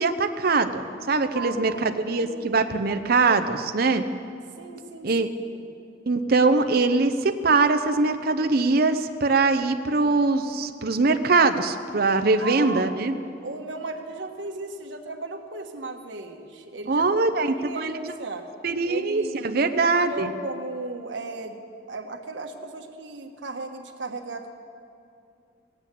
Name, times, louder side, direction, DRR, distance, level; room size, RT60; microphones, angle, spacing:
voice 1, 0.0-4.0 5.0-5.3 6.1-13.1 16.9-18.1 18.6-20.3, right 3 dB, 55° right, 8 dB, 0.7 m, -22 dB
voice 2, 1.3-1.9 2.1-2.7 4.6-5.1 5.4-5.7 12.4-12.9 13.4-17.0 17.4-18.5 18.8-21.6 21.9-24.5, right 3 dB, 90° right, 4 dB, 1.4 m, -36 dB
16.5 x 8.8 x 8.3 m, 2.5 s
head